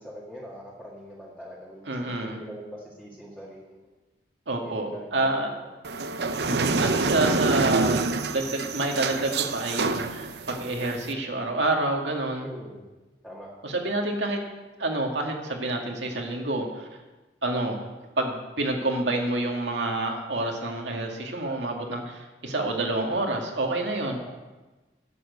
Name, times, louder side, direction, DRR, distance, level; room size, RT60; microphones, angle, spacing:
voice 1, 0.0-3.8 4.6-5.4 12.4-12.8 13.2-13.5 24.1-24.3, equal, 5° left, -7 dB, 1.8 m, -42 dB
voice 2, 1.9-2.4 4.5-5.5 6.4-12.5 13.6-14.4 14.8-16.9 17.4-24.3, right 2 dB, 80° right, 1 dB, 2.1 m, -28 dB
sound 1, 5.8-11.1, right 3 dB, 65° right, 0.7 m, -27 dB
11.0 x 7.2 x 8.1 m, 1.2 s
head